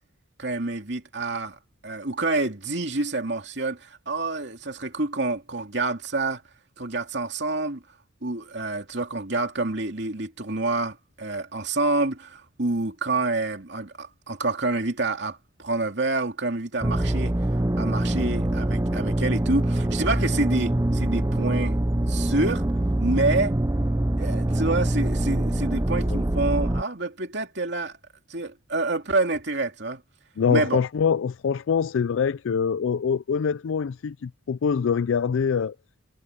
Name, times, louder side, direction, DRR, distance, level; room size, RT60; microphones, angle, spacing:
voice 1, 0.4-6.4 6.8-7.8 8.2-17.5 17.8-21.8 22.1-22.6 23.0-23.6 24.2-28.0 28.3-30.0 30.5-30.8, right 2 dB, 60° right, 2.9 m, -27 dB
sound 1, 16.8-26.8, right 1 dB, 15° right, 0.6 m, -24 dB
voice 2, 30.4-35.8, left 6 dB, 75° left, 0.4 m, -24 dB
head